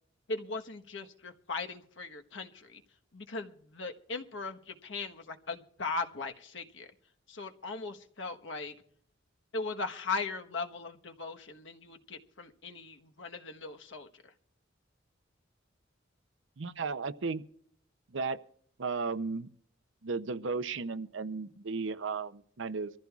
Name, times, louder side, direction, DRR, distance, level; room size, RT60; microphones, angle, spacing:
voice 1, 0.3-2.8 3.1-6.9 7.3-8.7 9.5-14.1, left 3 dB, 70° left, 1.2 m, -38 dB
voice 2, 16.6-17.4 18.1-18.4 18.8-19.5 20.0-22.9, right 4 dB, 70° right, 0.6 m, -34 dB
24.0 x 14.5 x 2.4 m
head